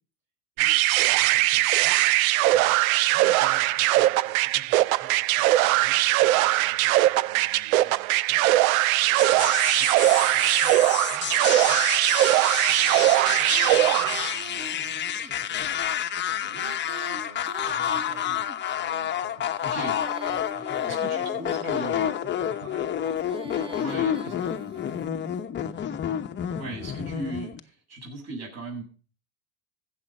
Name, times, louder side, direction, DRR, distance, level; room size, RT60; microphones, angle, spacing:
voice 1, 0.6-2.0 2.5-2.7 3.0-8.5 8.9-11.8 12.1-15.9 16.3-16.7 17.1-18.4 18.7-19.8 20.3-20.9 21.3-25.1, right 4 dB, 65° right, 1 dB, 4.8 m, -50 dB
sound 1, 0.6-14.4, right 16 dB, 85° right, 0.6 m, -21 dB
sound 2, 9.2-27.6, left 9 dB, 25° left, 1.0 m, -29 dB
Female singing, 13.2-15.3 16.4-18.7 19.5-21.7 22.9-25.2, right 2 dB, 15° right, 1.1 m, -42 dB
voice 2, 19.6-19.9 20.9-22.1 23.8-24.4 26.6-28.8, right 2 dB, 40° right, 1 dB, 7.8 m, -37 dB
15.0 x 7.6 x 5.5 m, 0.37 s
supercardioid pair, 125°, 41 cm